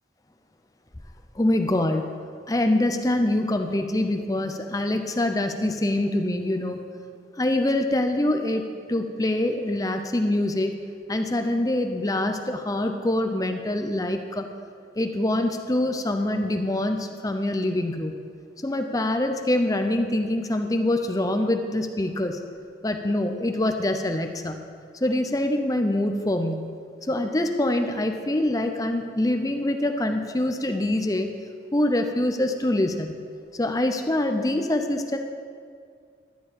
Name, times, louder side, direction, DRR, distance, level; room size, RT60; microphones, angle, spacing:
voice 1, 1.4-2.0 2.5-6.8 7.4-8.6 8.9-10.7 11.1-14.5 15.0-18.1 18.6-22.4 22.8-24.6 25.0-26.7 27.1-31.3 31.7-33.1 33.6-35.2, left 1 dB, 20° left, 6 dB, 0.6 m, -24 dB
12.5 x 4.5 x 8.5 m, 2.2 s
head